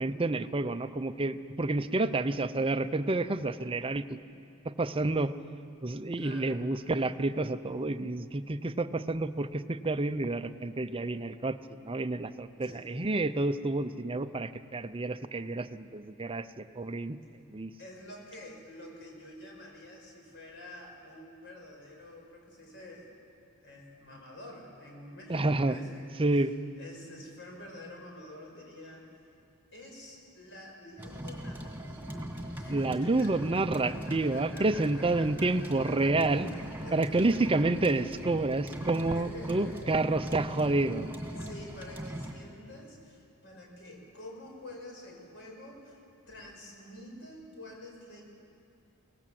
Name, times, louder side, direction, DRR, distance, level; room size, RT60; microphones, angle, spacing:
voice 1, 0.0-4.2 4.6-5.3 5.8-11.6 11.8-17.2 17.5-17.7 25.3-25.8 26.2-26.5 32.7-36.5 36.9-41.1, right 2 dB, 25° right, 10 dB, 0.6 m, -29 dB
voice 2, 6.2-6.6 12.6-12.9 17.8-23.2 23.6-26.5 26.8-29.3 29.7-32.3 32.5-33.3 33.8-35.5 35.8-36.1 36.4-37.6 39.1-40.1 41.4-46.0 46.3-48.2, left 1 dB, 55° left, 1 dB, 5.3 m, -48 dB
sound 1, 31.0-42.3, equal, 10° right, 2.3 m, -40 dB
23.5 x 18.5 x 7.6 m, 2.5 s
head